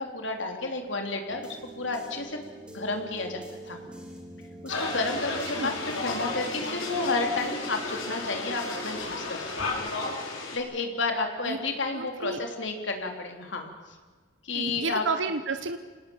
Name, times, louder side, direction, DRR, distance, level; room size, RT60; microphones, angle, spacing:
voice 1, 0.0-1.4 1.8-2.4 2.7-3.8 4.6-5.7 6.0-9.4 9.7-9.8 10.5-13.7 14.4-15.0, left 3 dB, 65° left, 3 dB, 3.4 m, -31 dB
sound 1, 1.3-9.3, right 1 dB, 5° right, 3.5 m, -45 dB
sound 2, 4.7-10.6, left 2 dB, 85° left, 5.8 m, -33 dB
voice 2, 11.9-12.4 14.5-15.8, right 4 dB, 70° right, 9 dB, 1.0 m, -31 dB
26.5 x 19.0 x 7.3 m, 1.4 s
head